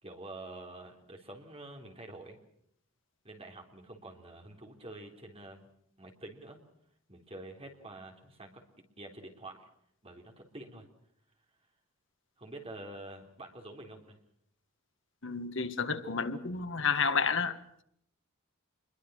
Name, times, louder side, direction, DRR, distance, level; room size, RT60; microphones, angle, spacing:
voice 1, 0.0-2.4 3.2-5.7 6.0-6.6 7.1-8.6 9.0-9.7 10.0-10.9 12.4-14.2, right 2 dB, 25° right, 3.8 m, -47 dB
voice 2, 15.2-17.8, left 5 dB, 60° left, 1.7 m, -31 dB
27.5 x 22.5 x 6.5 m
head